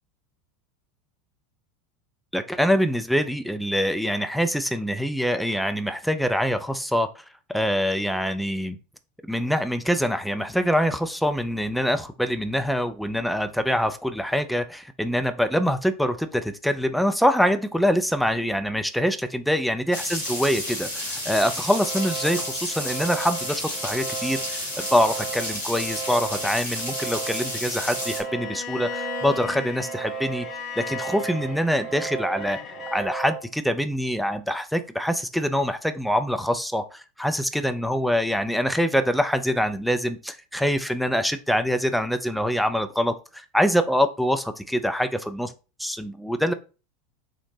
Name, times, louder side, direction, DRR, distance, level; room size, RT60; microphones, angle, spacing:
voice 1, 2.3-7.2 7.5-8.8 9.2-30.5 30.8-32.6 32.9-45.5 45.8-46.5, equal, ahead, 8 dB, 0.4 m, -24 dB
sound 1, 19.9-28.2, left 1 dB, 80° left, 1.6 m, -31 dB
sound 2, 21.6-33.4, right 6 dB, 30° right, 0.8 m, -36 dB
Bowed string instrument, 28.2-33.1, left 6 dB, 40° left, 0.6 m, -37 dB
3.9 x 2.0 x 3.2 m, 0.33 s
figure-of-eight pair, 80°, 0 cm